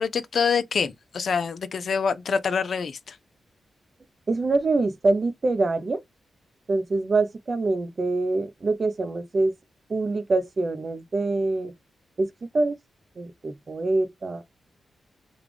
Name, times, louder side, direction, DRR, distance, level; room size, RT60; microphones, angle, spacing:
voice 1, 0.0-3.2, left 6 dB, 65° left, 0.5 m, -26 dB
voice 2, 4.3-6.0 6.7-9.5 9.9-11.7 12.2-12.8 13.2-14.4, right 3 dB, 45° right, 0.6 m, -25 dB
3.5 x 2.3 x 3.3 m
cardioid pair, 65°, 0 cm